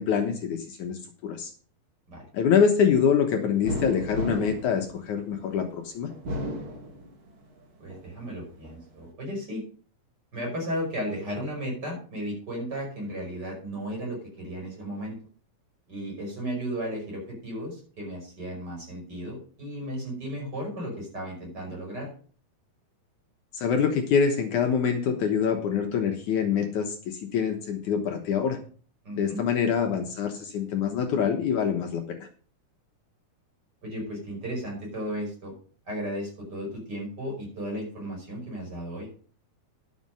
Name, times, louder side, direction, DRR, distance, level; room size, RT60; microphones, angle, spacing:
voice 1, 0.0-1.5 2.3-6.1 23.5-28.6 29.2-32.3, left 7 dB, 65° left, 4 dB, 2.0 m, -25 dB
sound 1, 3.6-5.6 6.1-7.4 7.9-8.8, equal, 40° right, 2.2 m, -34 dB
voice 2, 7.8-9.6 10.3-15.2 15.9-22.1 29.0-29.4 33.8-35.5 35.9-39.1, equal, 25° right, -1 dB, 6.0 m, -34 dB
11.0 x 7.4 x 5.5 m, 0.42 s
omnidirectional pair, 4.6 m